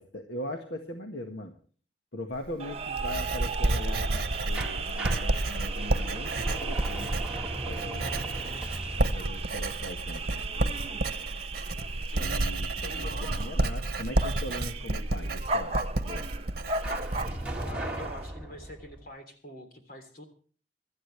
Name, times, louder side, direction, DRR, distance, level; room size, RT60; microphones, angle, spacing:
voice 1, 0.0-1.5 2.1-7.2 7.5-8.4 9.0-10.7 12.2-15.8 16.1-16.3, left 1 dB, 70° left, 4 dB, 1.7 m, -40 dB
Writing, 2.3-17.7, right 2 dB, 55° right, 1.1 m, -31 dB
sound 1, 2.6-18.3, right 4 dB, 35° right, 1.1 m, -37 dB
sound 2, 4.5-11.3 16.8-19.1, right 1 dB, 5° right, 2.1 m, -39 dB
voice 2, 12.8-13.3 17.6-20.2, left 1 dB, 55° left, 6 dB, 3.3 m, -46 dB
24.5 x 13.0 x 3.3 m, 0.42 s
head